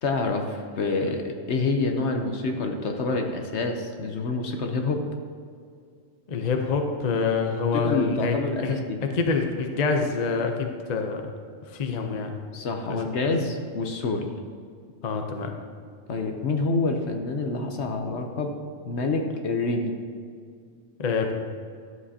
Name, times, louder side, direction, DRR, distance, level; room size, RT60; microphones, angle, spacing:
voice 1, 0.0-5.0 7.7-9.0 12.5-14.3 16.1-18.5 18.8-19.9, left 3 dB, 60° left, 4 dB, 1.0 m, -27 dB
voice 2, 6.3-8.4 8.6-8.7 9.0-11.2 11.7-12.3 12.9-13.0 15.0-15.5 21.0-21.3, left 4 dB, 40° left, 4 dB, 0.7 m, -26 dB
11.0 x 7.5 x 2.8 m, 2.2 s
omnidirectional pair, 1.4 m